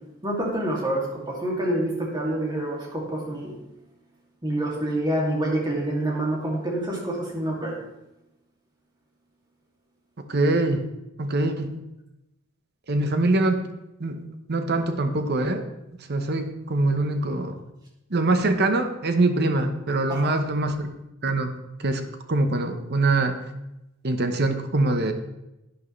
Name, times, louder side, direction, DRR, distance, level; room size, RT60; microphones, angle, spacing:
voice 1, 0.2-3.5 4.4-7.8 20.1-20.3, right 1 dB, 20° right, -3 dB, 2.6 m, -27 dB
voice 2, 10.3-10.8 11.2-11.8 12.9-13.7 14.0-14.2 14.5-15.6 16.0-17.6 18.1-20.9 21.2-21.5 21.8-22.0 22.3-23.3 24.0-25.1, right 2 dB, 55° right, 7 dB, 1.0 m, -23 dB
11.0 x 10.0 x 3.3 m, 0.93 s
head